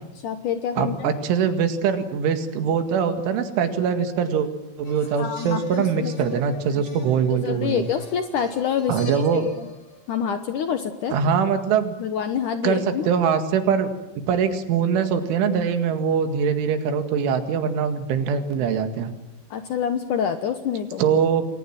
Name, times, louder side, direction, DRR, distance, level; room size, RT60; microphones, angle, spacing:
voice 1, 0.2-1.1 5.2-6.4 7.3-9.7 10.1-11.2 12.0-13.1 19.5-21.0, left 8 dB, 80° left, 8 dB, 1.8 m, -27 dB
voice 2, 0.8-4.5 4.8-7.9 8.9-9.5 11.1-12.0 12.6-13.9 14.2-19.1 21.0-21.5, right 7 dB, 90° right, 8 dB, 4.5 m, -22 dB
sound 1, 4.8-10.6 12.3-12.4, left 2 dB, 40° left, 6.0 m, -45 dB
29.0 x 22.5 x 7.6 m, 0.89 s
omnidirectional pair, 5.4 m